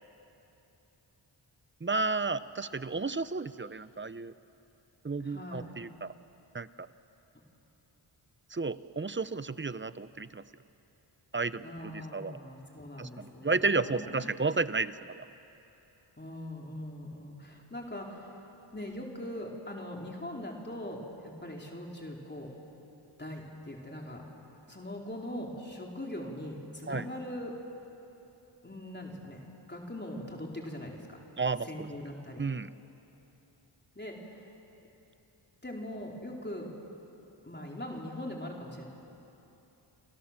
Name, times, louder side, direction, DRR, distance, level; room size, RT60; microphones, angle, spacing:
voice 1, 1.8-4.3 5.0-6.1 6.5-6.9 8.5-10.4 11.3-12.4 13.0-15.2 26.9-27.1 31.4-31.9 32.4-32.7, right 3 dB, 25° right, 14 dB, 0.8 m, -32 dB
voice 2, 5.2-5.7 11.6-14.3 16.2-18.4 18.7-22.5 23.2-24.2 24.7-27.5 28.6-29.4 29.7-31.2 31.6-32.4 34.0-34.5 35.6-36.7 37.4-38.8, left 1 dB, 20° left, -1 dB, 4.1 m, -41 dB
28.0 x 27.5 x 7.5 m, 3.0 s
cardioid pair, 70°, 49 cm